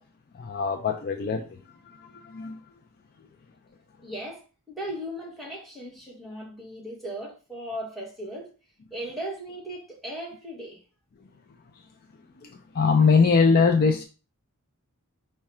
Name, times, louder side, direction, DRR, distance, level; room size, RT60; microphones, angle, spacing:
voice 1, 0.3-1.4 1.9-2.6 12.4-14.1, left 5 dB, 45° left, 0.4 m, -22 dB
voice 2, 4.0-8.5 8.9-10.8, right 1 dB, ahead, 1.3 m, -37 dB
4.7 x 2.2 x 4.2 m
head